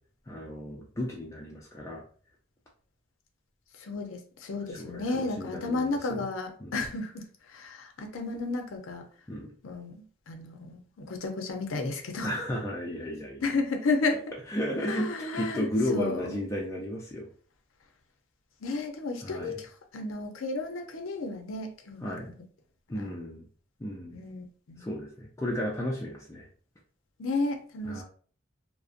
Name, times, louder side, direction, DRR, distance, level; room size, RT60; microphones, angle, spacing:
voice 1, 0.3-2.0 4.7-6.3 6.6-6.7 9.3-9.5 12.2-13.4 14.5-17.3 19.2-19.5 22.0-22.3 22.9-23.4 23.8-24.2 24.8-26.5 27.9-28.0, left 1 dB, 15° left, -3 dB, 0.3 m, -33 dB
voice 2, 3.8-9.1 9.6-12.3 13.4-14.2 14.9-16.4 18.6-22.3 22.9-23.1 24.1-24.9 27.2-28.0, left 3 dB, 85° left, 4 dB, 0.5 m, -33 dB
2.5 x 2.0 x 2.4 m, 0.43 s
head